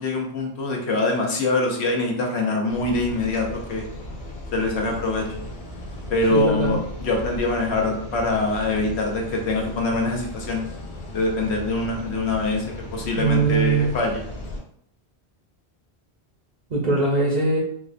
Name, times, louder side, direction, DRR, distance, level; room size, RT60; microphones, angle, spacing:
voice 1, 0.0-3.8 4.5-5.4 6.1-10.6 11.1-12.6 12.9-14.2, left 2 dB, 80° left, 1 dB, 1.0 m, -24 dB
sound 1, 2.7-14.6, left 1 dB, 55° left, 0.6 m, -36 dB
voice 2, 6.3-6.8 13.1-13.9 16.7-17.6, right 3 dB, 50° right, -4 dB, 0.6 m, -21 dB
3.5 x 2.1 x 2.4 m, 0.68 s
omnidirectional pair, 1.1 m